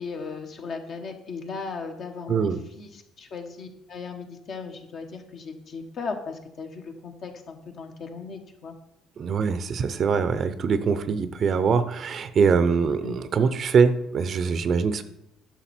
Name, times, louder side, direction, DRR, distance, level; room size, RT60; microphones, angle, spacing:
voice 1, 0.0-8.7 13.0-13.2, left 4 dB, 55° left, 3 dB, 1.5 m, -37 dB
voice 2, 2.3-2.6 9.2-15.0, right 5 dB, 50° right, 12 dB, 0.7 m, -23 dB
10.0 x 6.4 x 4.4 m, 0.81 s
supercardioid pair, 80°, 0 cm